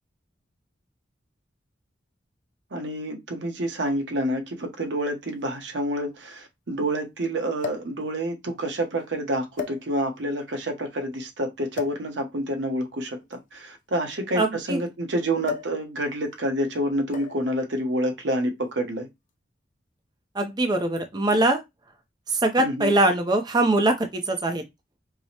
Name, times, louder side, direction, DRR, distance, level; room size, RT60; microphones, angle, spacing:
voice 1, 2.7-19.1 22.6-22.9, right 1 dB, 85° right, 0.9 m, -28 dB
sound 1, 3.9-4.0 5.1-5.2 5.4-5.5 7.6-8.0 8.8-9.0 9.5-10.2 11.7-12.1 13.2-14.8 15.4-15.8 16.1-16.4 17.1-17.5 18.5-18.7, left 7 dB, 50° left, 0.6 m, -35 dB
voice 2, 14.3-14.8 20.3-21.6 22.3-24.6, right 2 dB, 25° right, 0.5 m, -22 dB
4.7 x 2.0 x 2.7 m
head